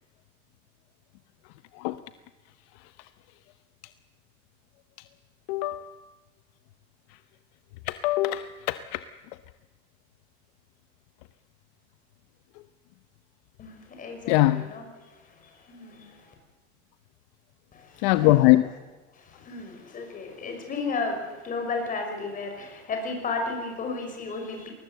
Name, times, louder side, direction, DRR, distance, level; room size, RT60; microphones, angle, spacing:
voice 1, 5.5-5.9 7.9-9.0 14.3-14.7 18.0-18.6, left 17 dB, 60° left, 12 dB, 0.9 m, -22 dB
voice 2, 13.6-14.8 15.7-16.1 17.7-18.3 19.2-24.7, left 3 dB, 25° left, 3 dB, 5.6 m, -33 dB
21.0 x 19.5 x 8.0 m, 1.2 s
supercardioid pair, 160°, 34 cm